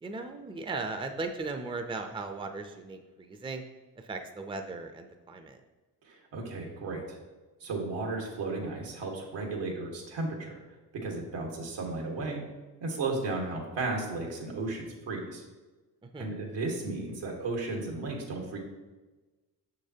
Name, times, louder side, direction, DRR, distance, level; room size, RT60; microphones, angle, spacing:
voice 1, 0.0-3.6 4.0-5.6 16.1-16.3, right 3 dB, 10° right, 6 dB, 0.5 m, -37 dB
voice 2, 6.0-7.2 7.6-10.6 11.0-12.4 12.8-15.4 16.2-18.6, right 3 dB, 80° right, 0 dB, 1.6 m, -34 dB
6.7 x 6.0 x 2.8 m, 1.2 s
cardioid pair, 70°, 42 cm